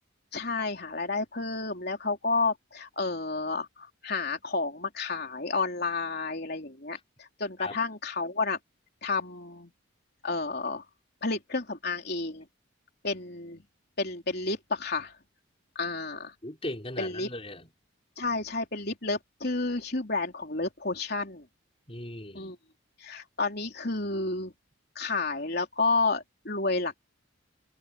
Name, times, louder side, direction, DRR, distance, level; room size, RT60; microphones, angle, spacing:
voice 1, 0.3-8.6 9.0-9.7 10.2-10.8 11.2-12.5 13.0-13.6 14.0-15.1 15.8-16.3 17.0-17.3 18.2-21.5 22.3-22.6 23.0-24.5 25.0-27.0, left 3 dB, 50° left, 3.8 m, -31 dB
voice 2, 16.4-17.7 21.9-22.5, left 1 dB, 25° left, 5.0 m, -38 dB
head